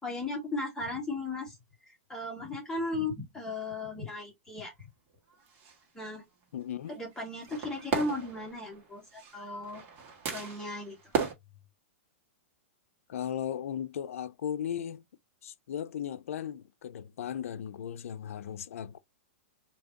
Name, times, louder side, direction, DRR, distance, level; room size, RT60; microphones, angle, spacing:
voice 1, 0.0-1.6 1.8-4.7 5.9-6.2 6.9-9.8 10.3-11.0, left 2 dB, 5° left, 1.9 m, -36 dB
sound 1, 5.1-5.8 6.8-11.3, right 5 dB, 30° right, 1.7 m, -36 dB
voice 2, 6.5-6.9 13.1-15.0 15.4-19.0, left 9 dB, 80° left, 0.5 m, -36 dB
4.9 x 2.9 x 2.8 m
hypercardioid pair, 150°, 7 cm